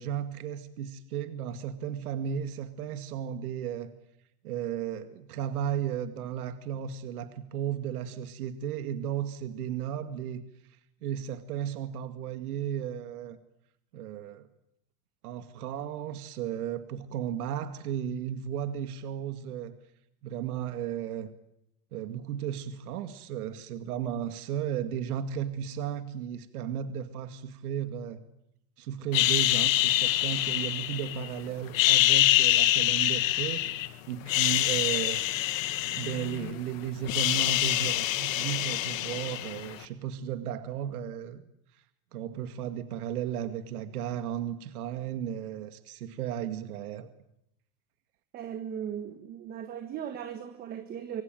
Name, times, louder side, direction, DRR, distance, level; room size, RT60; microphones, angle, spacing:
voice 1, 0.0-3.9 4.4-10.4 11.0-13.4 13.9-14.5 15.2-19.7 20.2-21.3 21.9-28.2 28.8-35.2 35.9-41.4 42.1-47.1, right 9 dB, 75° right, 2.2 m, -34 dB
sound 1, 29.1-31.3 31.7-33.9 34.2-36.6 36.9-39.7, left 15 dB, 60° left, 2.1 m, -26 dB
voice 2, 48.3-51.2, right 9 dB, 20° right, 1.4 m, -37 dB
25.0 x 24.5 x 9.1 m
supercardioid pair, 170°, 44 cm